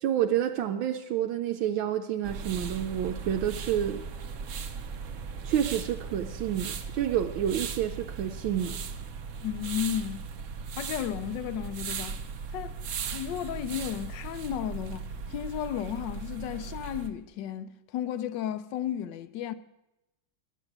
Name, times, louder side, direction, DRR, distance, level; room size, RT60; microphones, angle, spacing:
voice 1, 0.0-4.0 5.4-8.8, right 10 dB, 80° right, 1.5 m, -29 dB
sound 1, 2.2-17.1, right 5 dB, 60° right, 0.8 m, -38 dB
voice 2, 9.4-10.2 10.8-12.2 12.5-12.8 13.1-15.0 15.3-19.5, left 10 dB, 70° left, 1.2 m, -33 dB
11.5 x 8.4 x 7.9 m
omnidirectional pair, 2.2 m